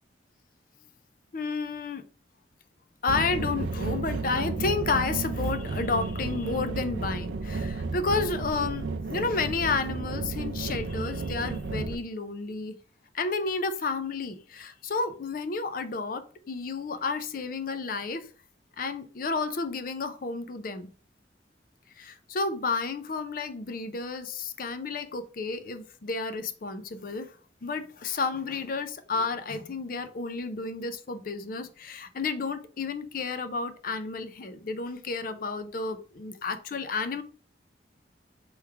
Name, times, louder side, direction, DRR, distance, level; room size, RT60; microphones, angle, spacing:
voice 1, 1.3-2.0 3.0-12.8 13.1-18.3 18.8-20.9 22.0-27.4 27.6-37.2, left 4 dB, 50° left, 10 dB, 0.5 m, -31 dB
sound 1, 3.1-11.9, right 3 dB, 80° right, 0.5 m, -32 dB
3.5 x 3.1 x 4.6 m, 0.41 s
head